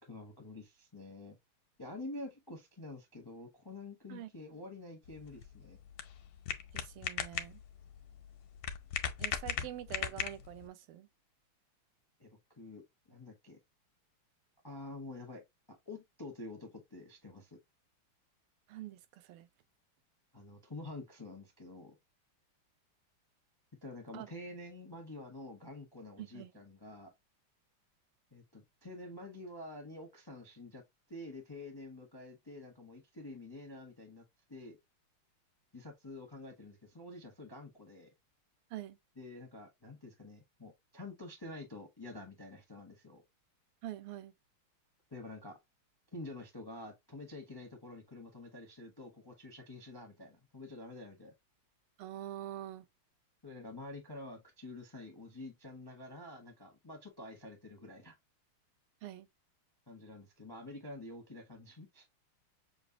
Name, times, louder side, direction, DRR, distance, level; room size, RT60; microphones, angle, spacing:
voice 1, 0.0-1.4 1.8-5.8 9.5-9.7 12.2-13.6 14.6-17.6 20.3-22.0 23.8-27.1 28.3-30.8 31.1-34.8 35.7-38.1 39.2-43.2 45.1-45.6 46.1-51.3 53.4-58.2 59.9-62.0, left 2 dB, 25° left, 0.5 m, -48 dB
sound 1, 5.1-10.7, left 9 dB, 85° left, 1.6 m, -39 dB
voice 2, 6.7-7.6 9.2-11.1 18.7-19.5 24.1-24.3 26.2-26.5 38.7-39.0 43.8-44.3 52.0-52.9 59.0-59.3, right 13 dB, 85° right, 1.5 m, -45 dB
6.4 x 2.5 x 2.6 m
omnidirectional pair, 2.4 m